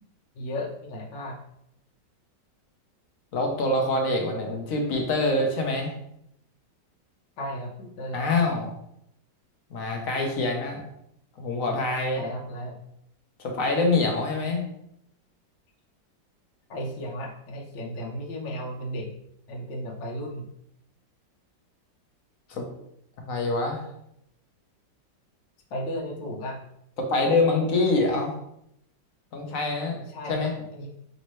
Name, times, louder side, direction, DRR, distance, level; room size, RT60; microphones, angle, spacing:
voice 1, 0.3-1.4 7.4-8.2 12.1-12.8 16.7-19.1 19.5-20.5 25.7-26.6 30.0-30.9, equal, 80° left, -1 dB, 1.5 m, -34 dB
voice 2, 3.3-5.9 8.1-8.7 9.7-10.8 11.4-12.2 13.4-14.6 22.5-22.6 23.2-23.8 27.0-28.3 29.3-30.0 30.3-30.5, left 2 dB, 55° left, 2 dB, 1.0 m, -25 dB
5.2 x 2.8 x 3.1 m, 0.76 s
omnidirectional pair, 2.0 m